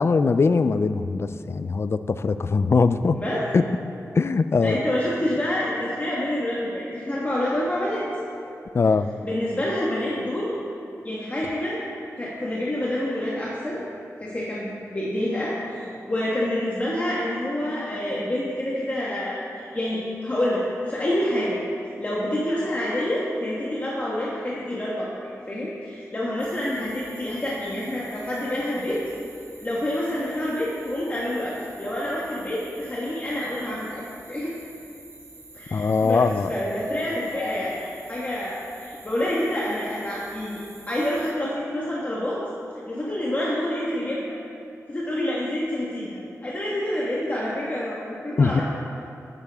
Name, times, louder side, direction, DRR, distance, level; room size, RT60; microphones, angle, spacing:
voice 1, 0.0-3.2 3.5-3.6 4.1-4.8 8.7-9.1 35.7-36.5 48.4-48.6, left 4 dB, 50° left, 12 dB, 0.4 m, -21 dB
voice 2, 4.6-8.1 9.2-10.6 11.0-11.8 12.2-13.8 14.2-21.6 22.0-25.1 25.5-29.0 29.6-34.0 34.3-34.5 35.5-40.6 40.9-42.4 42.9-44.4 44.9-48.6, left 1 dB, 30° left, -6 dB, 1.5 m, -27 dB
sound 1, 26.4-41.3, right 2 dB, 50° right, 1.7 m, -48 dB
12.5 x 9.2 x 3.6 m, 2.6 s
wide cardioid pair, 90°, 6 cm